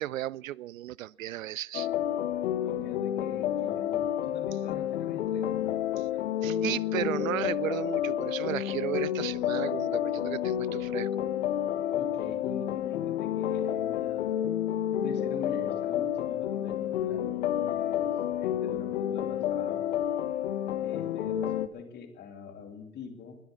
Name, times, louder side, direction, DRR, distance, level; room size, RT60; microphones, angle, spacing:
voice 1, 0.0-1.9 6.0-6.1 6.4-11.1, right 14 dB, 65° right, 0.5 m, -34 dB
sound 1, 1.7-21.7, left 11 dB, 55° left, 1.3 m, -30 dB
voice 2, 2.6-5.7 11.9-14.3 15.0-18.1 18.4-19.8 20.8-23.4, left 6 dB, 25° left, 2.7 m, -44 dB
21.5 x 7.9 x 8.2 m
hypercardioid pair, 125°, 43 cm